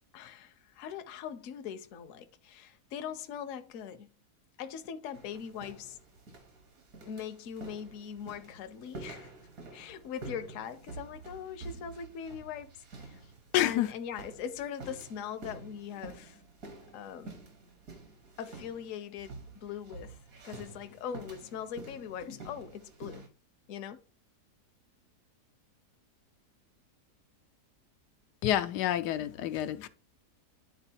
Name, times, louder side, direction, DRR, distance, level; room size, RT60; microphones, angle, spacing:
voice 1, 0.1-4.1 4.6-6.0 7.1-9.3 9.7-12.7 13.0-13.2 13.5-16.4 16.9-17.4 18.4-20.2 20.4-23.2 23.7-24.0, left 8 dB, 65° left, 0.9 m, -41 dB
sound 1, 5.1-23.3, right 3 dB, 60° right, 1.7 m, -49 dB
voice 2, 13.5-13.9 28.4-29.9, left 12 dB, 90° left, 1.2 m, -28 dB
10.5 x 4.0 x 2.8 m
omnidirectional pair, 1.7 m